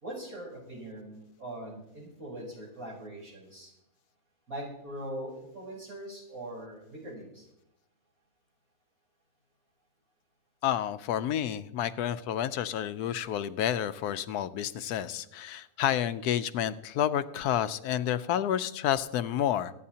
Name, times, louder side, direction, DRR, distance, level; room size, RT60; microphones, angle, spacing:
voice 1, 0.0-3.7 4.5-7.4, right 1 dB, 65° right, -4 dB, 4.8 m, -41 dB
voice 2, 10.6-19.7, left 10 dB, 90° left, 13 dB, 1.2 m, -30 dB
24.0 x 9.6 x 2.8 m, 0.82 s
omnidirectional pair, 1.6 m